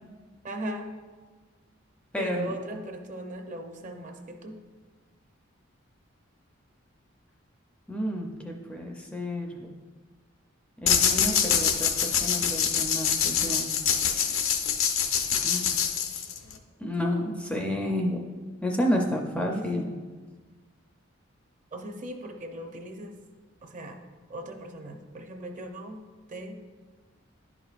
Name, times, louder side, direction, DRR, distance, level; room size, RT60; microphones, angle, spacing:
voice 1, 0.4-0.9 2.2-4.5 19.5-19.9 21.7-23.1 23.6-24.0 24.3-26.0 26.3-26.6, right 1 dB, 40° right, 4 dB, 0.6 m, -38 dB
voice 2, 2.1-2.5 7.9-9.7 10.8-13.7 15.4-15.7 16.8-18.3 18.6-19.8, equal, 5° left, 1 dB, 0.4 m, -30 dB
sound 1, 10.9-16.6, left 8 dB, 80° left, 0.6 m, -25 dB
11.0 x 4.9 x 2.4 m, 1.4 s
head